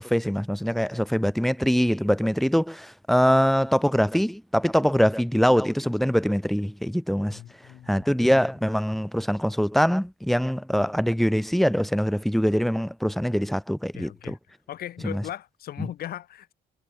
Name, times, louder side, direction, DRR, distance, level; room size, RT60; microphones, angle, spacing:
voice 1, 0.0-7.4 7.9-14.4 15.0-15.2, equal, ahead, 3.6 m, -23 dB
voice 2, 7.3-8.1 13.9-14.4 14.7-16.5, left 12 dB, 65° left, 5.9 m, -38 dB
cardioid pair, 110°, 17 cm